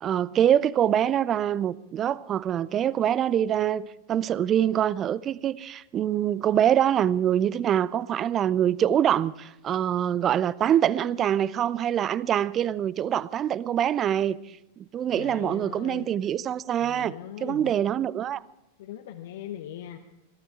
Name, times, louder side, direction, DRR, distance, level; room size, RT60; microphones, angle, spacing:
voice 1, 0.0-14.4 14.8-18.4, right 10 dB, 30° right, 0.4 m, -25 dB
voice 2, 15.1-16.1 16.8-17.7 18.8-20.0, left 11 dB, 55° left, 0.9 m, -39 dB
22.0 x 13.0 x 4.8 m
figure-of-eight pair, 90°, 0 cm